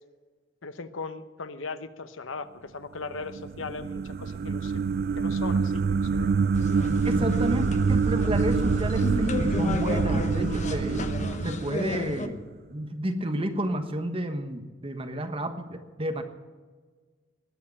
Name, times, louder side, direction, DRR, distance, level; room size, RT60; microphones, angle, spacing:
voice 1, 0.6-4.8 5.2-6.3, left 4 dB, 80° left, 11 dB, 0.9 m, -38 dB
sound 1, 3.2-12.4, right 5 dB, 50° right, 0.3 m, -26 dB
sound 2, 6.5-12.3, left 2 dB, 35° left, 0.9 m, -33 dB
voice 2, 7.0-11.0 11.4-12.4 12.7-16.2, right 1 dB, 30° right, 7 dB, 1.3 m, -31 dB
19.5 x 6.7 x 8.7 m, 1.4 s
head